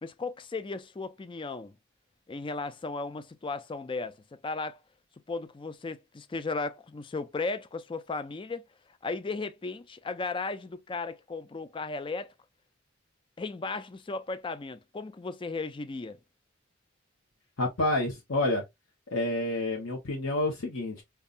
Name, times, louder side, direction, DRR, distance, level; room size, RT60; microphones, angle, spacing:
voice 1, 0.0-1.7 2.3-4.8 5.3-8.6 9.0-12.3 13.4-16.2, left 3 dB, 25° left, 0.4 m, -35 dB
voice 2, 17.6-18.6 19.1-21.0, left 2 dB, 75° left, 1.0 m, -28 dB
5.3 x 2.3 x 2.5 m
head